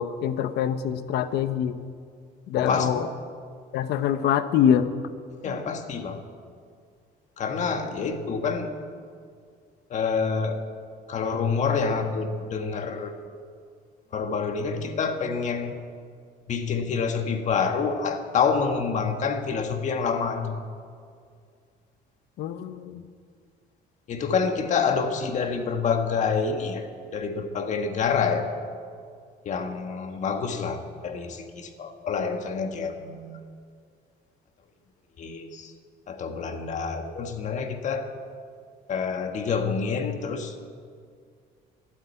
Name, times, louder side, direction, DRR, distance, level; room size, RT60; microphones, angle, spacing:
voice 1, 0.0-1.8 2.5-3.1 3.7-4.9 22.4-23.1, left 9 dB, 70° left, 11 dB, 0.9 m, -24 dB
voice 2, 2.5-2.9 5.4-6.2 7.4-8.7 9.9-10.6 11.1-13.2 14.1-15.8 16.5-20.6 24.1-28.5 29.4-33.4 35.2-35.7 36.1-38.1 38.9-40.6, left 5 dB, 45° left, 6 dB, 1.5 m, -27 dB
13.0 x 12.0 x 9.2 m, 2.1 s
cardioid pair, 145°, 18 cm